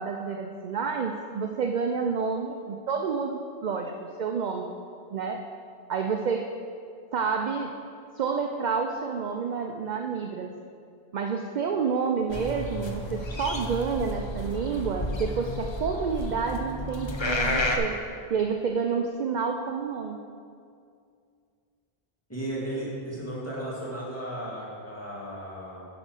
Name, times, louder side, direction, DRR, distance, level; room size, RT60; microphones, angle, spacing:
voice 1, 0.0-4.7 5.1-5.4 5.9-6.5 7.1-7.7 8.2-10.5 11.1-18.0 18.3-20.2, right 5 dB, 55° right, 3 dB, 0.6 m, -29 dB
sound 1, 12.3-17.8, left 1 dB, 35° left, 0.6 m, -31 dB
voice 2, 22.3-25.9, right 1 dB, 15° left, -7 dB, 2.1 m, -35 dB
7.8 x 5.3 x 6.2 m, 2.3 s
omnidirectional pair, 1.0 m